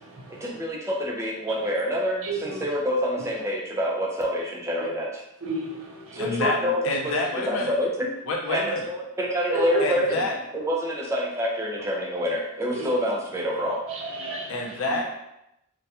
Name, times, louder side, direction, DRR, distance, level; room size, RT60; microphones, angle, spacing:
voice 1, 0.3-5.2 6.1-7.1 7.5-8.2 8.5-10.2 10.5-13.9 14.9-15.0, equal, 15° right, -2 dB, 0.4 m, -27 dB
voice 2, 5.5-6.1 9.5-9.9 12.7-12.9 13.9-14.5, right 3 dB, 75° right, 0 dB, 0.5 m, -30 dB
voice 3, 6.2-6.6 6.8-7.7 8.2-8.9 9.8-10.3 14.5-15.0, left 2 dB, 70° left, -1 dB, 0.5 m, -28 dB
2.3 x 2.2 x 2.7 m, 0.85 s
head